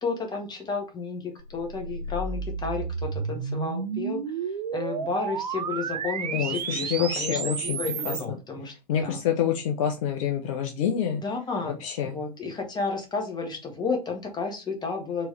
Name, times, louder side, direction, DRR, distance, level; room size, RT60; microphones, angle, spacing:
voice 1, 0.0-8.7 9.0-9.2 11.2-15.3, left 4 dB, 20° left, 2 dB, 1.4 m, -32 dB
sound 1, 1.4-8.2, right 6 dB, 75° right, 0.5 m, -32 dB
voice 2, 6.3-7.8 8.0-8.1 8.9-11.2 11.8-12.1, left 9 dB, 50° left, 5 dB, 0.7 m, -27 dB
4.5 x 3.1 x 3.2 m, 0.28 s
figure-of-eight pair, 85°, 21 cm